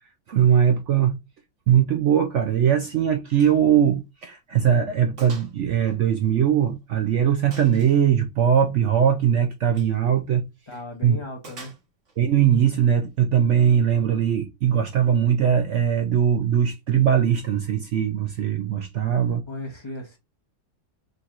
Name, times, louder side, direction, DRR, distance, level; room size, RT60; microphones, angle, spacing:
voice 1, 0.3-1.2 1.7-10.4 11.0-11.2 12.2-19.4, right 9 dB, 70° right, 0.7 m, -20 dB
Gunshot gunfire, 3.4-3.6 3.9-4.0 4.5-4.6 5.2-5.6 5.9-6.8 7.5-8.0 9.7-10.0 11.4-12.2, right 3 dB, 45° right, 1.6 m, -45 dB
voice 2, 10.7-11.7 19.5-20.2, left 2 dB, 20° left, 0.7 m, -36 dB
4.3 x 3.9 x 2.5 m
omnidirectional pair, 1.8 m